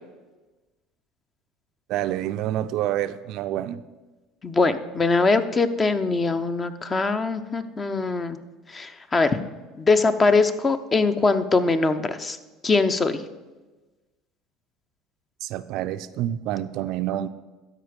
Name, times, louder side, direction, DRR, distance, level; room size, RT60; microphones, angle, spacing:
voice 1, 1.9-3.8 15.4-17.3, right 12 dB, 65° right, 12 dB, 0.4 m, -28 dB
voice 2, 4.4-8.4 8.7-9.4 9.8-12.4 12.6-13.2, left 3 dB, 25° left, 11 dB, 0.7 m, -22 dB
12.5 x 4.8 x 5.1 m, 1.2 s
supercardioid pair, 90°, 0 cm